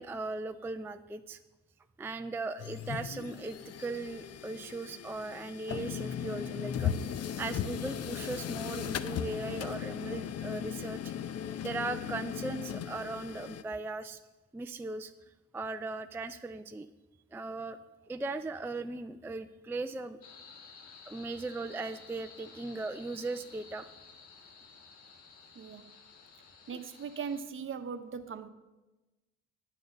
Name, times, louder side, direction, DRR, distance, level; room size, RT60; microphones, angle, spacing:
voice 1, 0.0-1.4 2.0-11.1 11.6-14.2 14.5-15.1 15.5-16.9 17.3-17.8 18.1-20.2 21.1-23.9, right 3 dB, 10° right, 8 dB, 0.3 m, -38 dB
sound 1, 2.6-13.6, left 8 dB, 55° left, 0.6 m, -37 dB
sound 2, 20.2-27.4, left 5 dB, 90° left, 1.3 m, -54 dB
voice 2, 25.5-25.9 26.7-28.5, right 6 dB, 45° right, 10 dB, 0.8 m, -39 dB
9.9 x 7.0 x 6.5 m, 1.1 s
cardioid pair, 90°, 30 cm